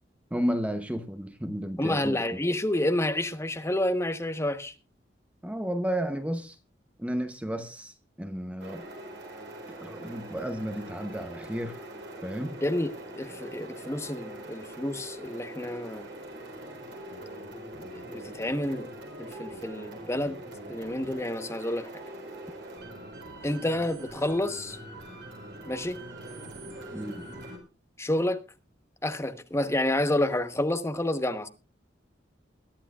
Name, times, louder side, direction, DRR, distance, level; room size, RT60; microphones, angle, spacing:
voice 1, 0.3-2.4 5.4-6.6 7.0-8.9 9.8-11.8 12.2-12.6 26.9-27.2, equal, 10° right, 0.8 m, -32 dB
voice 2, 1.8-4.7 12.6-16.1 17.8-18.9 19.2-20.4 20.7-21.9 23.4-24.8 25.7-26.0 28.0-28.4 29.0-31.5, left 1 dB, 15° left, 1.1 m, -29 dB
sound 1, 8.6-27.6, right 1 dB, 75° right, 4.3 m, -43 dB
21.5 x 12.0 x 2.4 m
head